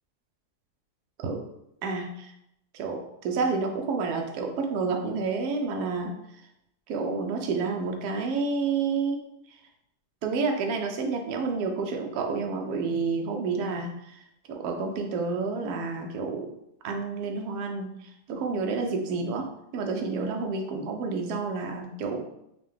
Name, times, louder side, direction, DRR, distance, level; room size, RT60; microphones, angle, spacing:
voice 1, 1.8-2.3 2.7-6.1 6.9-9.2 9.5-9.6 10.2-14.2 14.5-16.5 16.8-19.5 19.7-22.2, right 4 dB, 75° right, 3 dB, 1.1 m, -29 dB
5.4 x 2.3 x 3.5 m, 0.81 s
omnidirectional pair, 1.7 m